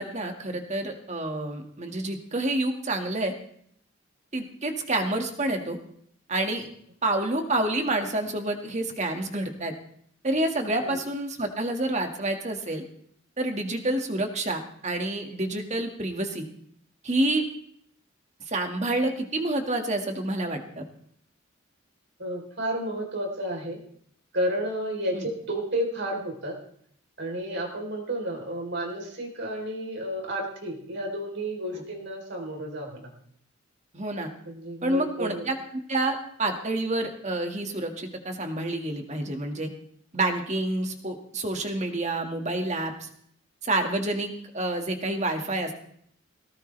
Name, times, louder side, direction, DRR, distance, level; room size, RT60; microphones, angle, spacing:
voice 1, 0.0-3.3 4.3-5.8 6.3-6.7 7.0-9.7 10.2-12.8 13.4-16.5 17.0-17.4 18.5-20.9 25.1-25.3 31.7-31.8 33.9-34.3 34.8-35.6 35.9-39.7 40.1-43.1 43.6-45.7, right 2 dB, 35° right, 5 dB, 2.0 m, -28 dB
voice 2, 22.2-23.8 24.3-26.6 27.2-33.1 34.5-35.5, right 1 dB, 60° right, 2 dB, 3.9 m, -31 dB
18.0 x 17.5 x 3.4 m, 0.66 s
head